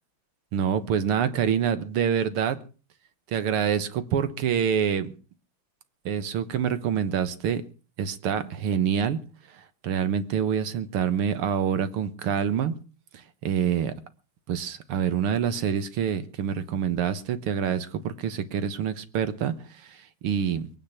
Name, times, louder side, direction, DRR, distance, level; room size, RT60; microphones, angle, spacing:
voice 1, 0.5-2.6 3.3-5.1 6.1-7.6 8.0-9.2 9.8-12.7 13.1-13.9 14.5-19.5 19.8-20.7, right 8 dB, 90° right, 2.1 m, -26 dB
22.0 x 9.5 x 5.8 m
omnidirectional pair, 2.4 m